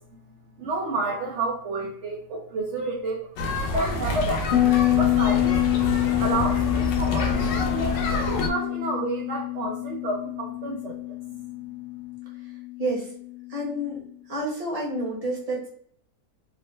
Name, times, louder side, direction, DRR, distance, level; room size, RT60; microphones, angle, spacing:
voice 1, 0.6-3.3 3.7-5.9 6.2-7.9 8.3-11.0 11.3-11.4, right 2 dB, 60° right, -2 dB, 0.8 m, -30 dB
sound 1, 3.4-8.5, left 2 dB, 90° left, 1.3 m, -27 dB
Bass guitar, 4.5-13.9, left 18 dB, 60° left, 0.9 m, -26 dB
voice 2, 12.8-13.1 13.5-14.0 14.3-15.7, right 1 dB, 25° right, -3 dB, 1.0 m, -29 dB
3.8 x 2.1 x 3.1 m, 0.63 s
omnidirectional pair, 1.8 m